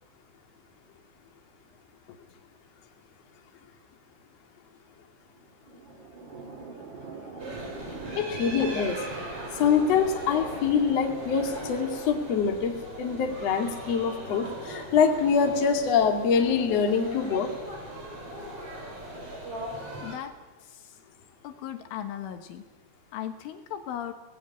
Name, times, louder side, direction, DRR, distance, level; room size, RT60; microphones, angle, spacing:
voice 1, 2.1-2.4 20.0-20.3 20.6-21.0 21.4-22.6 23.1-24.1, left 10 dB, 75° left, 7 dB, 3.6 m, -37 dB
sound 1, 5.2-13.7, right 4 dB, 75° right, 1.0 m, -44 dB
sound 2, 7.4-20.2, right 1 dB, 30° right, 5.5 m, -39 dB
voice 2, 8.1-9.1 9.5-17.5, left 6 dB, 40° left, 3 dB, 2.5 m, -25 dB
23.5 x 18.5 x 9.5 m, 1.1 s
omnidirectional pair, 6.0 m